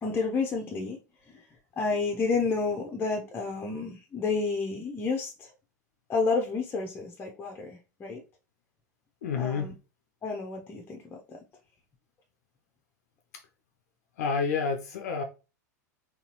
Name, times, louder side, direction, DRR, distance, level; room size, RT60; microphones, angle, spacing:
voice 1, 0.0-1.0 1.3-1.4 1.8-5.5 6.1-8.2 9.4-9.7 10.2-11.4, left 4 dB, 20° left, 0.7 m, -30 dB
voice 2, 9.2-9.7 13.3-13.4 14.2-15.2, left 5 dB, 60° left, 0.6 m, -29 dB
4.0 x 2.8 x 2.9 m
figure-of-eight pair, 90°, 10 cm